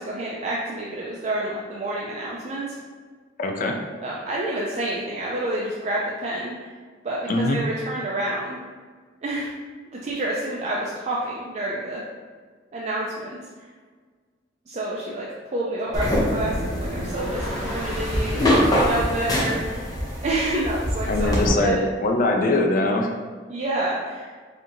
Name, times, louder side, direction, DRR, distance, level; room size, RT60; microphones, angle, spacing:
voice 1, 0.0-2.8 4.0-6.8 7.0-8.6 9.2-9.5 9.9-12.0 12.7-13.7 14.7-19.9 20.2-21.9 23.5-24.3, right 1 dB, 40° right, -4 dB, 0.4 m, -28 dB
voice 2, 3.4-3.8 7.3-7.6 21.1-23.1, left 2 dB, 45° left, 2 dB, 0.3 m, -22 dB
sound 1, 15.8-20.9, equal, 10° right, 1.5 m, -34 dB
sound 2, 15.9-21.5, equal, 20° left, 0.7 m, -24 dB
4.3 x 2.7 x 2.5 m, 1.5 s
head